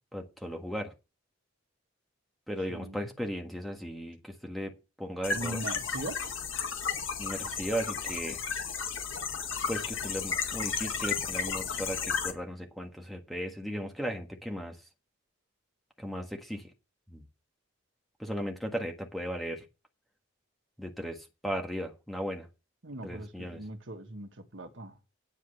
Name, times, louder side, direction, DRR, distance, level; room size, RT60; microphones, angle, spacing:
voice 1, 0.1-0.9 2.5-5.6 7.2-8.4 9.7-14.8 16.0-16.7 17.1-17.2 18.2-19.6 20.8-22.5 23.0-23.6, equal, ahead, 1.5 m, -36 dB
voice 2, 2.7-3.1 5.3-6.4 22.8-25.0, right 1 dB, 65° right, 1.5 m, -40 dB
sound 1, 5.2-12.3, left 6 dB, 70° left, 1.8 m, -33 dB
9.9 x 4.8 x 7.7 m
head